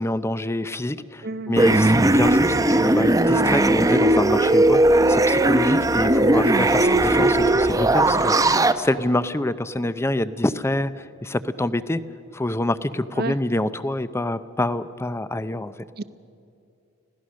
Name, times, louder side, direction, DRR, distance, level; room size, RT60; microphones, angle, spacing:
voice 1, 0.0-12.0 12.3-15.7, left 1 dB, 15° left, 14 dB, 0.6 m, -26 dB
voice 2, 1.2-1.7 6.5-7.0 13.2-13.3 16.0-16.1, right 3 dB, 50° right, 13 dB, 0.6 m, -30 dB
sound 1, 1.6-8.7, right 1 dB, 15° right, 0.7 m, -18 dB
26.0 x 17.0 x 6.3 m, 2.6 s
head